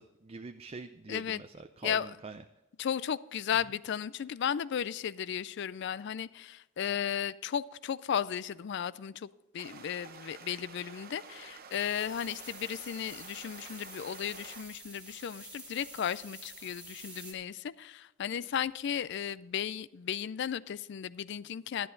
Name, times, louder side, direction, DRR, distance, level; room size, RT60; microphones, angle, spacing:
voice 1, 0.0-2.4 3.5-3.6, right 4 dB, 30° right, 8 dB, 0.4 m, -45 dB
voice 2, 1.1-1.4 1.8-2.1 2.8-9.3 9.5-21.9, left 8 dB, 60° left, 19 dB, 0.4 m, -35 dB
sound 1, 9.6-14.6, right 5 dB, 50° right, 0.9 m, -50 dB
sound 2, 11.7-17.3, right 1 dB, 5° right, 2.0 m, -49 dB
11.0 x 11.0 x 3.9 m, 1.0 s
head